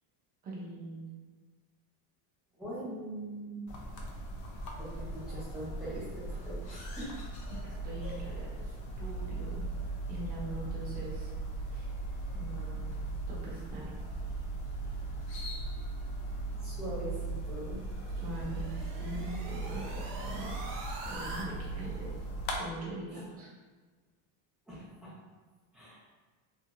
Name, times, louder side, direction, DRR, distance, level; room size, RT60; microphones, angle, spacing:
voice 1, 0.4-1.1 7.6-9.6 10.1-11.3 11.7-11.9 12.3-12.9 13.3-13.9 18.2-20.6 21.1-22.1 22.6-23.5, right 1 dB, 20° right, -5 dB, 0.4 m, -42 dB
voice 2, 2.6-3.6 4.8-7.1 8.0-8.2 16.6-17.9 24.7-25.1 25.7-26.0, right 1 dB, ahead, -11 dB, 0.8 m, -42 dB
sound 1, 3.7-22.6, right 2 dB, 55° left, 0.5 m, -38 dB
sound 2, 17.5-21.4, right 2 dB, 70° right, 0.7 m, -44 dB
2.6 x 2.5 x 2.6 m, 1.4 s
cardioid pair, 165°, 49 cm